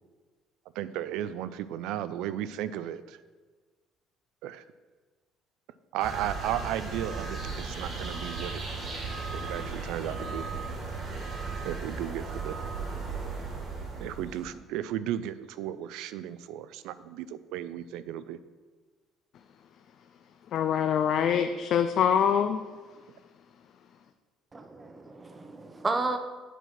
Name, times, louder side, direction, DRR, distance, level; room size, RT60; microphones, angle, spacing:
voice 1, 0.8-3.2 4.4-4.6 5.9-8.6 9.3-10.5 11.6-12.6 14.0-18.4, right 11 dB, 80° right, 14 dB, 0.4 m, -34 dB
sound 1, 6.0-14.5, right 4 dB, 40° right, 1.5 m, -36 dB
voice 2, 20.5-22.6, left 8 dB, 50° left, 7 dB, 0.4 m, -24 dB
voice 3, 24.5-26.2, right 3 dB, 15° right, 7 dB, 0.6 m, -32 dB
8.0 x 4.6 x 5.9 m, 1.4 s
cardioid pair, 155°, 0 cm